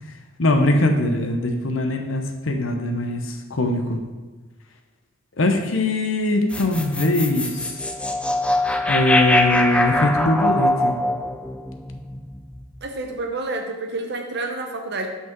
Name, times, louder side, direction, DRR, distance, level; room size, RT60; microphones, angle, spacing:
voice 1, 0.4-4.0 5.4-7.8 8.9-11.0, left 2 dB, 80° left, 5 dB, 0.9 m, -21 dB
sound 1, 6.5-12.8, left 1 dB, 5° left, 0.4 m, -23 dB
voice 2, 12.8-15.1, right 2 dB, 55° right, 3 dB, 0.9 m, -29 dB
5.9 x 5.7 x 4.5 m, 1.3 s
head